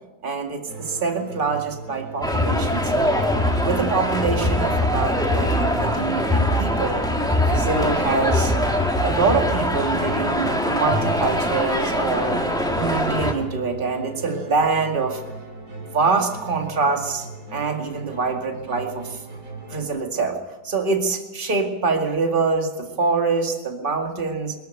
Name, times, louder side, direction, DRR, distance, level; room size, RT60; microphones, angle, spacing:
voice 1, 0.2-3.2 3.6-7.0 7.4-8.5 9.0-12.4 12.7-15.2 15.9-17.3 17.5-19.2 19.7-20.4 20.6-24.5, right 4 dB, 30° right, 3 dB, 2.3 m, -25 dB
sound 1, 0.7-19.8, right 3 dB, 65° right, 3.7 m, -38 dB
sound 2, 2.2-13.3, left 1 dB, ahead, 2.3 m, -22 dB
24.0 x 13.5 x 9.1 m, 1.1 s
omnidirectional pair, 1.8 m